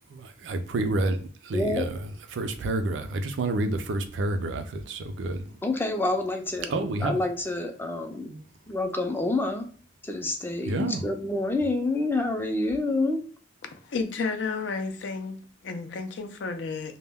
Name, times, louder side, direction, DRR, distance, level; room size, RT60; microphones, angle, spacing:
voice 1, 0.1-1.9 2.3-5.5 6.7-7.2 8.3-8.4 10.7-11.0, right 2 dB, 85° right, 0.4 m, -29 dB
voice 2, 1.5-1.8 5.6-8.3 8.7-9.7 10.0-13.2, left 2 dB, 10° left, 0.4 m, -28 dB
voice 3, 13.6-17.0, left 4 dB, 75° left, 0.4 m, -32 dB
2.2 x 2.1 x 3.4 m
head